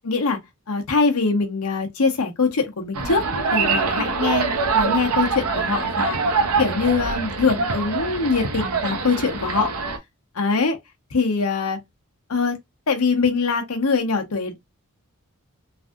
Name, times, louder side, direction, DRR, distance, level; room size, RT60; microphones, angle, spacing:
voice 1, 0.0-0.4 0.7-3.2 3.5-4.4 4.7-6.2 6.6-9.7 10.3-10.8 11.1-11.8 12.3-12.6 12.9-14.6, left 4 dB, 85° left, 0.9 m, -22 dB
sound 1, 2.9-10.0, right 4 dB, 85° right, 0.6 m, -24 dB
3.3 x 2.6 x 2.4 m
head